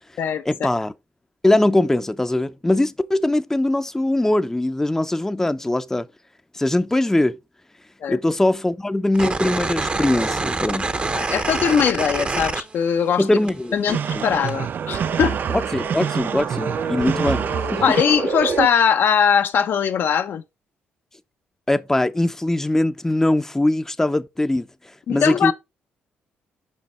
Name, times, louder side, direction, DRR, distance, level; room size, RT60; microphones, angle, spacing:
voice 1, 0.5-0.9 1.4-6.1 6.5-7.4 8.1-10.9 13.2-14.2 15.5-17.9 21.7-24.7 25.1-25.5, left 1 dB, 10° left, 0.6 m, -21 dB
sound 1, 9.1-13.2 13.5-14.5, right 3 dB, 30° right, 0.8 m, -25 dB
voice 2, 11.1-13.2 13.7-15.4 17.8-20.4 25.1-25.5, left 7 dB, 65° left, 0.7 m, -20 dB
sound 2, 13.9-18.0, right 8 dB, 55° right, 0.3 m, -27 dB
sound 3, 14.8-18.7, right 5 dB, 80° right, 1.5 m, -28 dB
6.3 x 5.2 x 4.3 m
supercardioid pair, 70°, 4 cm